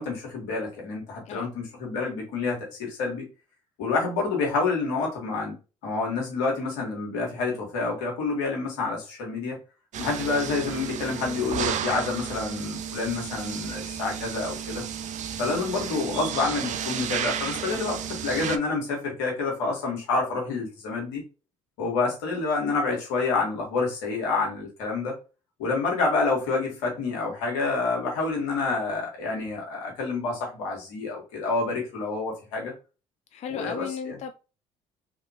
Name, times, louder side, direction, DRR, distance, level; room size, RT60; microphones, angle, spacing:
voice 1, 0.0-3.3 3.8-5.5 5.8-9.6 10.0-14.8 15.4-21.2 21.8-25.2 25.6-32.7 33.5-34.2, left 3 dB, 80° left, 1.4 m, -28 dB
sound 1, 9.9-18.6, right 9 dB, 50° right, 0.4 m, -33 dB
voice 2, 33.3-34.3, left 7 dB, 45° left, 0.4 m, -34 dB
3.1 x 2.8 x 2.8 m
hypercardioid pair, 55°, 16 cm